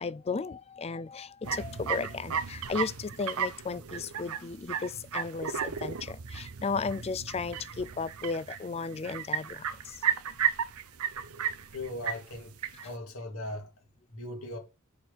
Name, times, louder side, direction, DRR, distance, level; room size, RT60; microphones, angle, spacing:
voice 1, 0.0-10.0 12.7-12.9, left 4 dB, 30° left, 0.4 m, -35 dB
sound 1, 1.4-12.9, right 7 dB, 85° right, 0.8 m, -34 dB
voice 2, 11.7-12.5 12.8-13.7 14.1-14.6, left 1 dB, 70° left, 2.7 m, -38 dB
6.9 x 4.4 x 5.8 m
head